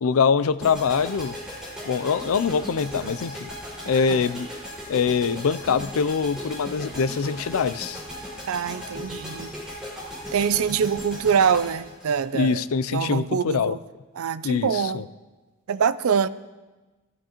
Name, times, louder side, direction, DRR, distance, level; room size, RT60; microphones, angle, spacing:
voice 1, 0.0-1.4 1.8-3.5 3.9-4.5 4.9-8.0 12.3-13.8 14.4-15.0, left 5 dB, 75° left, 14 dB, 0.4 m, -24 dB
sound 1, 0.6-12.8, equal, 5° right, 5.1 m, -37 dB
voice 2, 8.5-9.5 10.3-12.6 12.9-13.8 14.2-15.0 15.7-16.3, right 7 dB, 75° right, 16 dB, 0.4 m, -24 dB
18.5 x 13.5 x 3.0 m, 1.2 s
head